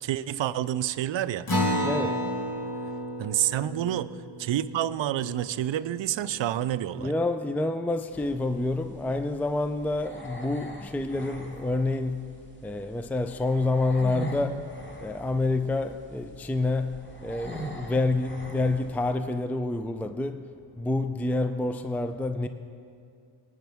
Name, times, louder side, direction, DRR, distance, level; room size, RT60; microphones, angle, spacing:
voice 1, 0.0-1.5 3.2-4.1 4.4-7.1, right 12 dB, 75° right, 0.5 m, -28 dB
Acoustic guitar, 1.5-6.4, equal, 50° left, 2.2 m, -32 dB
voice 2, 1.8-2.2 7.0-12.3 12.6-14.7 15.0-20.4 20.8-22.5, left 2 dB, 5° left, 0.4 m, -28 dB
sound 1, 8.1-19.1, right 1 dB, 25° left, 2.2 m, -43 dB
18.5 x 9.3 x 3.6 m
cardioid pair, 55°, 46 cm